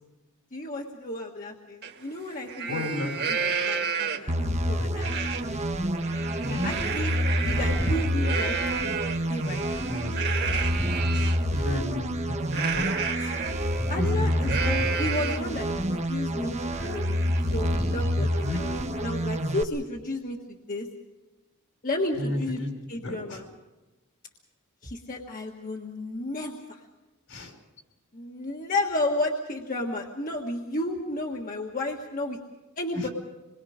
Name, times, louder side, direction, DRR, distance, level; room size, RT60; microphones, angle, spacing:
voice 1, 0.5-2.9 3.3-5.1 6.5-7.1 7.4-8.6 9.3-9.8 13.2-13.5 13.9-20.9 21.8-22.6 22.9-23.4 24.8-26.8 28.1-32.4 32.8-33.1, left 1 dB, 40° left, 1 dB, 1.6 m, -32 dB
Livestock farm animals working animals, 1.8-1.9 2.3-4.4 5.0-5.4 5.8-11.4 12.5-15.6 16.0-16.1 16.5-18.8, right 6 dB, 50° right, 2.0 m, -32 dB
voice 2, 2.7-3.3 6.4-6.8 9.9-10.5 11.1-12.9 13.3-14.6 18.2-18.6 22.1-22.7 22.9-23.5 27.3-27.6 32.9-33.1, left 1 dB, 70° left, 4 dB, 5.0 m, -33 dB
sound 1, 4.3-19.6, equal, 30° right, 1.1 m, -28 dB
27.0 x 22.0 x 5.1 m, 1.1 s
head